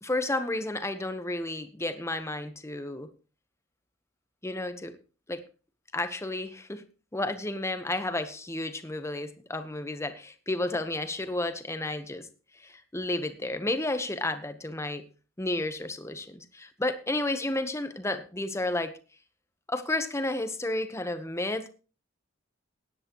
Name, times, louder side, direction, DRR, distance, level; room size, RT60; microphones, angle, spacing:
voice 1, 0.0-3.1 4.4-5.0 5.3-5.4 5.9-6.8 7.1-12.3 12.6-15.0 15.4-19.0 19.7-21.7, left 2 dB, 15° left, 1.1 m, -32 dB
17.0 x 10.5 x 3.1 m
head